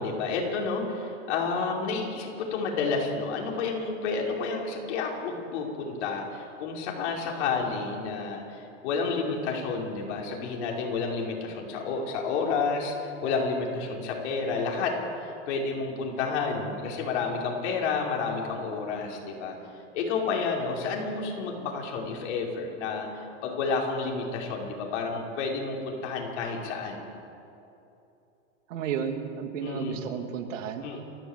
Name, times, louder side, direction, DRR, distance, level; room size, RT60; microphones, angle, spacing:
voice 1, 0.0-12.9 13.2-19.6 19.9-27.0 29.6-30.0 30.8-31.0, left 4 dB, 60° left, -1 dB, 5.1 m, -30 dB
voice 2, 28.7-30.9, right 7 dB, 80° right, 6 dB, 2.5 m, -32 dB
28.5 x 12.5 x 8.2 m, 2.8 s
supercardioid pair, 155°, 37 cm